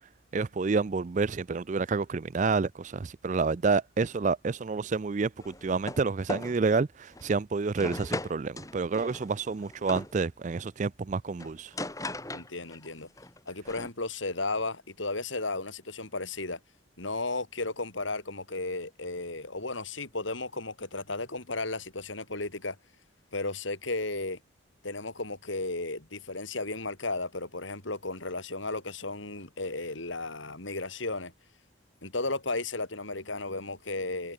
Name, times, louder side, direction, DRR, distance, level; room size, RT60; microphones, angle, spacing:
voice 1, 0.3-11.7, right 4 dB, 40° right, 0.4 m, -29 dB
sound 1, 5.4-6.0 6.3-6.6 7.1-7.3 7.8-10.1 11.4-12.9 13.2-13.9, left 1 dB, 15° left, 4.8 m, -38 dB
voice 2, 12.3-13.1 13.5-16.6 17.0-22.8 23.3-24.4 24.8-31.3 32.0-34.3, left 2 dB, 75° left, 4.6 m, -34 dB
head